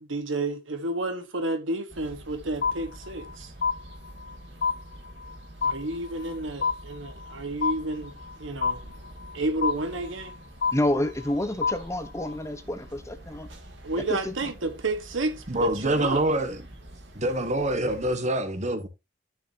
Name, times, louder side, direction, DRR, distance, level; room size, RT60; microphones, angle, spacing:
voice 1, 0.1-3.5 5.6-8.1 8.4-8.8 9.3-10.3 13.8-16.2, right 2 dB, 85° right, 1.4 m, -31 dB
sound 1, 1.9-18.1, right 1 dB, 70° right, 2.2 m, -47 dB
sound 2, 2.6-3.3 3.6-4.4 4.6-5.4 5.6-6.4 6.6-7.4 7.6-8.4 8.6-9.4 9.6-10.4 10.6-11.4 11.6-12.4, left 5 dB, 55° left, 0.7 m, -28 dB
voice 2, 10.7-13.5 14.1-14.3, left 1 dB, 15° left, 0.8 m, -28 dB
voice 3, 15.5-16.7 17.1-18.9, right 1 dB, 40° right, 1.3 m, -26 dB
11.5 x 6.4 x 2.8 m
head